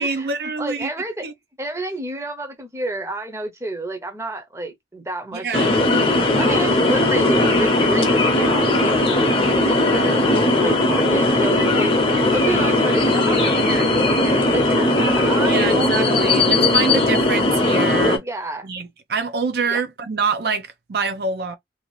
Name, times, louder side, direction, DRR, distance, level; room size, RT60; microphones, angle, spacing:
voice 1, 0.0-0.9 1.2-1.3 5.3-5.7 12.5-12.7 15.4-18.2 18.6-21.6, right 5 dB, 60° right, 0.5 m, -26 dB
voice 2, 0.6-1.3 1.6-5.6 6.4-12.0 12.3-16.6 18.2-18.7 19.7-19.8, right 1 dB, 15° right, 0.7 m, -29 dB
sound 1, 5.5-18.2, left 2 dB, 30° left, 0.7 m, -18 dB
2.7 x 2.4 x 3.0 m
head